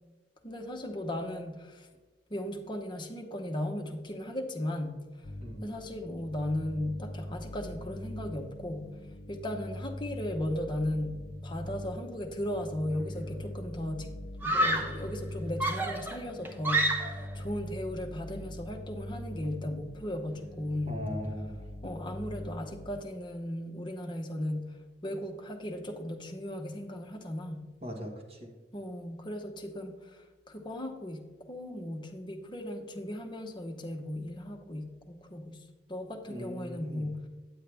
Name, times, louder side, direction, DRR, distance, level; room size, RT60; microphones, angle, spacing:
voice 1, 0.4-1.9 2.3-4.9 5.6-8.9 9.3-14.1 14.4-21.1 21.8-24.8 25.0-27.7 28.7-37.2, left 1 dB, 25° left, 3 dB, 0.8 m, -36 dB
sound 1, 5.2-23.0, left 1 dB, 55° left, 0.7 m, -42 dB
Screaming, 12.9-13.3 14.4-15.0 15.6-17.3, right 1 dB, 10° right, 0.8 m, -29 dB
voice 2, 20.9-21.7 27.8-28.5 36.3-37.0, equal, 35° right, 0 dB, 1.4 m, -40 dB
9.4 x 7.5 x 3.3 m, 1.3 s
head